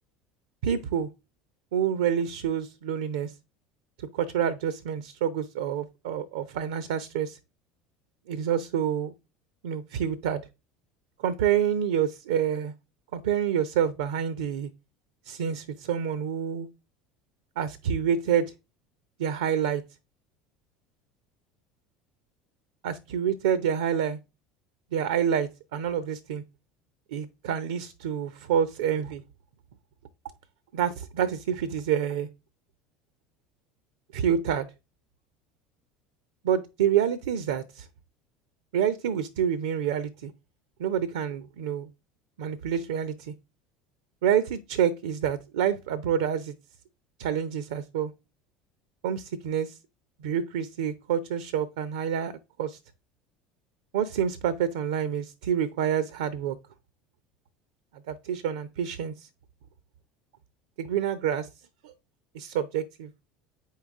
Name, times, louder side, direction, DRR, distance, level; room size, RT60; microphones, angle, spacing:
voice 1, 0.6-1.1 1.7-3.3 4.1-7.4 8.3-9.1 9.6-10.4 11.2-12.7 13.1-14.7 15.2-16.7 17.6-18.5 19.2-19.8 22.8-24.2 24.9-26.4 27.1-29.2 30.7-32.3 34.1-34.7 36.4-37.9 38.7-40.3 40.8-41.9 42.4-43.3 44.2-46.5 47.2-48.1 49.0-49.8 50.2-52.3 52.6-52.8 53.9-56.6 58.1-59.3 60.8-61.5 61.8-61.9 62.3-63.1, right 8 dB, 70° right, 0.7 m, -27 dB
8.4 x 5.6 x 3.6 m
figure-of-eight pair, 70°, 0 cm